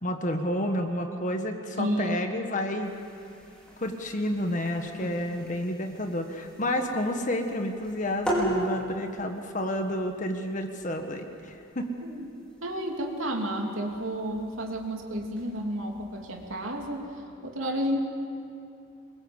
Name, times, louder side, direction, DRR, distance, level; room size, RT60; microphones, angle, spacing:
voice 1, 0.0-2.9 3.8-11.9, left 1 dB, 40° left, 5 dB, 1.6 m, -30 dB
voice 2, 1.8-2.4 5.0-5.2 12.0-12.3 12.6-17.1 17.4-18.0, equal, 75° right, 1 dB, 3.2 m, -31 dB
sound 1, 2.8-17.0, right 1 dB, 5° left, 5.1 m, -39 dB
26.0 x 22.0 x 8.1 m, 2.5 s
head